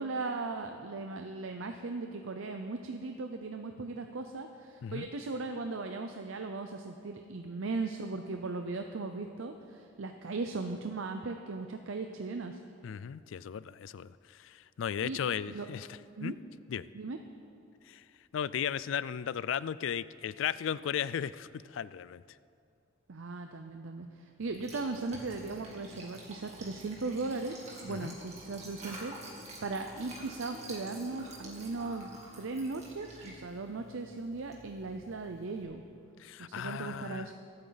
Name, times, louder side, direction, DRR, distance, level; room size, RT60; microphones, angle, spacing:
voice 1, 0.0-12.6 15.0-15.2 15.5-15.7 16.1-16.4 16.9-17.2 23.1-35.8 36.4-37.3, right 3 dB, 85° right, 5 dB, 0.6 m, -38 dB
voice 2, 12.8-15.9 16.2-16.3 16.7-16.9 17.9-18.0 18.3-22.2 27.9-28.1 36.2-37.3, left 8 dB, 75° left, 17 dB, 0.3 m, -36 dB
Liquid, 24.4-35.6, right 1 dB, 35° right, 2.5 m, -49 dB
23.5 x 8.8 x 4.0 m, 2.4 s
head